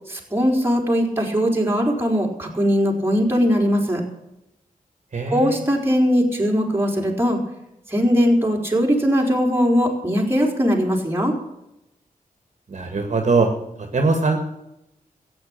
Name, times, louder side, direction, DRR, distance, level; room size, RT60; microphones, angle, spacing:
voice 1, 0.1-4.0 5.3-7.4 7.9-11.3, equal, 15° right, -1 dB, 4.1 m, -20 dB
voice 2, 5.1-5.6 12.7-13.5 13.8-14.4, right 3 dB, 55° right, 4 dB, 2.1 m, -21 dB
14.5 x 8.9 x 8.8 m, 0.86 s
wide cardioid pair, 80°, 15 cm